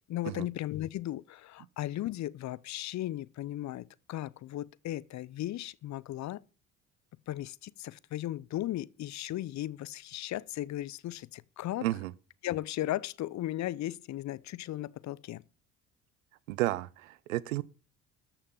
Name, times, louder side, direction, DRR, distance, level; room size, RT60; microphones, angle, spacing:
voice 1, 0.0-6.4 7.3-11.9 12.4-15.4, left 14 dB, 45° left, 0.7 m, -36 dB
voice 2, 11.8-12.1 16.5-17.6, right 16 dB, 80° right, 0.7 m, -32 dB
13.5 x 5.9 x 7.1 m
hypercardioid pair, 55°, 39 cm